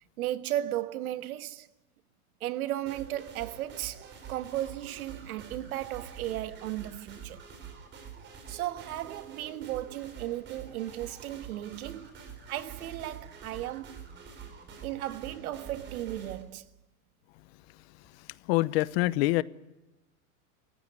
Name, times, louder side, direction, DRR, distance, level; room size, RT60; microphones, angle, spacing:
voice 1, 0.2-1.7 2.4-7.5 8.5-12.2 12.5-14.0 14.8-16.7, right 13 dB, 75° right, 1.6 m, -35 dB
sound 1, 2.9-16.4, right 7 dB, 25° right, 4.0 m, -46 dB
voice 2, 18.5-19.4, left 19 dB, 45° left, 0.9 m, -25 dB
28.0 x 15.5 x 9.6 m
supercardioid pair, 155°, 43 cm